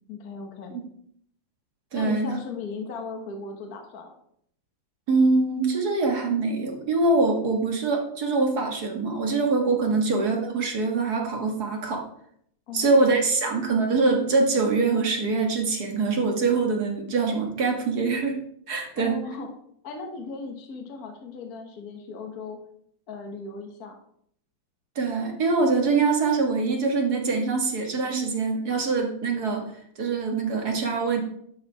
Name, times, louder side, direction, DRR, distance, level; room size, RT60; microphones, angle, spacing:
voice 1, 0.1-0.7 1.9-4.2 12.7-12.9 19.0-19.5 19.8-22.6 23.1-23.9, left 4 dB, 50° left, 3 dB, 1.7 m, -37 dB
voice 2, 1.9-2.4 5.1-12.0 12.7-18.4 18.7-19.2 25.0-29.6 30.0-31.2, right 3 dB, 55° right, 1 dB, 2.0 m, -24 dB
11.5 x 4.8 x 4.8 m, 0.67 s
omnidirectional pair, 2.1 m